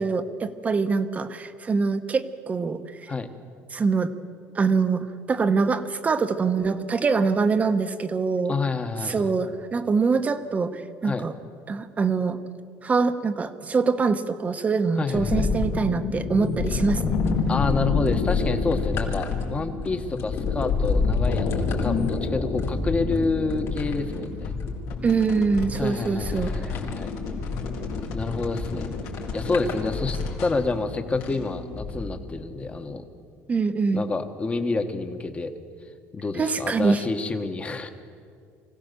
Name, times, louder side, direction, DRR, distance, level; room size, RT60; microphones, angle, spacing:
voice 1, 0.0-3.1 3.7-4.1 4.5-8.5 9.0-11.3 11.7-12.4 12.8-17.1 25.0-26.5 33.5-34.0 36.3-37.0, right 4 dB, 25° right, 10 dB, 1.1 m, -24 dB
voice 2, 8.5-9.3 11.0-11.3 15.0-15.5 17.5-24.6 25.8-27.1 28.1-28.9 29.3-33.0 33.9-35.5 36.1-37.9, left 3 dB, 20° left, 7 dB, 1.5 m, -28 dB
sound 1, 15.1-32.1, left 4 dB, 80° left, 3.5 m, -28 dB
sound 2, 16.7-17.7 18.1-28.4 29.2-29.9 30.6-30.7, left 5 dB, 55° left, 3.5 m, -40 dB
24.0 x 16.5 x 6.9 m, 2.3 s
cardioid pair, 125°, 6 cm